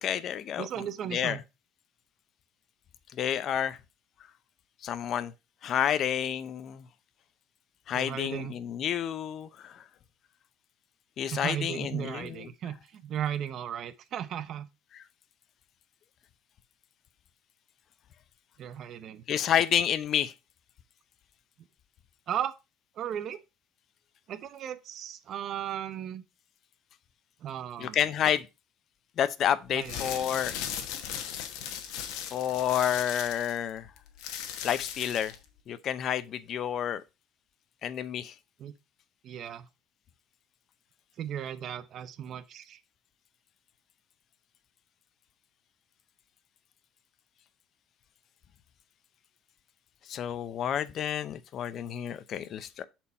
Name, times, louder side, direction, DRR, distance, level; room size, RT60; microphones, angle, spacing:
voice 1, 0.0-0.7 1.1-1.4 3.1-3.8 4.8-5.3 5.6-6.9 7.9-9.8 11.2-12.5 19.3-20.3 27.8-28.5 29.2-30.5 32.3-33.9 34.6-35.3 35.7-37.0 37.8-38.3 50.1-52.8, left 9 dB, 45° left, 0.6 m, -29 dB
voice 2, 0.6-1.4 7.9-8.6 11.3-14.7 18.6-19.2 22.3-22.6 23.0-23.4 24.3-26.2 27.4-28.0 29.7-30.3 38.6-38.7 39.2-39.7 41.2-42.8, right 10 dB, 50° right, 0.6 m, -36 dB
sound 1, 29.8-35.4, left 9 dB, 75° left, 1.2 m, -38 dB
6.9 x 4.4 x 4.2 m
cardioid pair, 130°, 0 cm